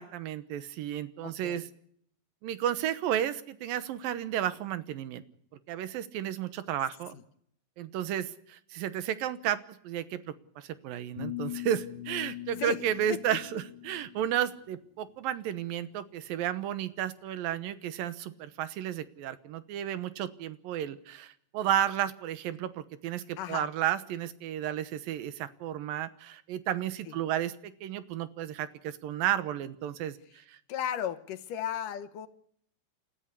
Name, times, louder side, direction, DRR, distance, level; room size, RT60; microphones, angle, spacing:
voice 1, 0.0-1.7 2.4-5.2 5.7-7.2 7.8-9.6 9.8-30.6, right 11 dB, 80° right, 14 dB, 2.8 m, -33 dB
voice 2, 1.2-1.6 12.6-12.8 13.1-13.4 23.4-23.7 27.1-27.2 30.7-32.3, left 10 dB, 70° left, 12 dB, 2.6 m, -35 dB
sound 1, 11.2-14.3, left 14 dB, 25° left, 1.2 m, -40 dB
29.0 x 13.5 x 8.3 m, 0.66 s
omnidirectional pair, 4.1 m